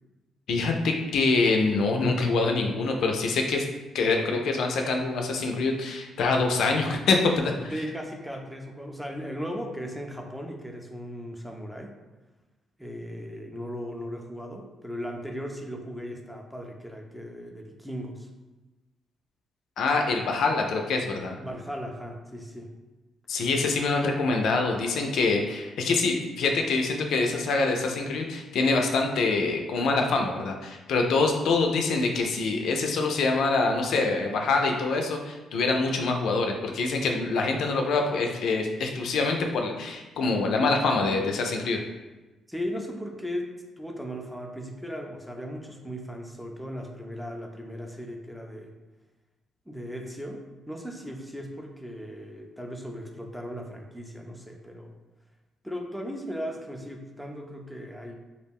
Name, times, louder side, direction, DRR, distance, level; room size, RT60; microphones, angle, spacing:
voice 1, 0.5-3.6 3.9-7.7 19.8-21.4 23.3-41.8, left 3 dB, 75° left, 3 dB, 0.3 m, -25 dB
voice 2, 7.7-11.9 12.8-18.3 21.4-22.7 42.5-48.7 49.7-54.9 55.6-58.2, equal, 5° right, 2 dB, 0.4 m, -37 dB
2.3 x 2.1 x 3.4 m, 1.1 s
cardioid pair, 90°, 0 cm